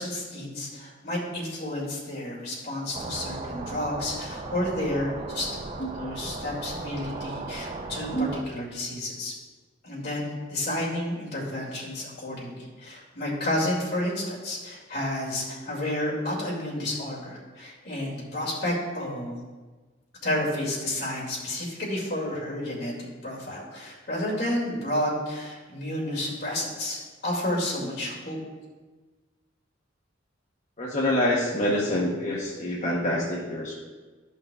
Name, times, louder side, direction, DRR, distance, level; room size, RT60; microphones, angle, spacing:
voice 1, 0.0-5.5 5.9-9.3 9.8-19.4 20.2-22.9 23.2-28.4, left 1 dB, 55° left, -5 dB, 2.2 m, -31 dB
sound 1, 2.9-8.4, right 3 dB, 30° right, 0.4 m, -36 dB
voice 2, 30.8-33.7, left 1 dB, 35° left, -5 dB, 0.8 m, -26 dB
13.0 x 5.7 x 2.3 m, 1.3 s
head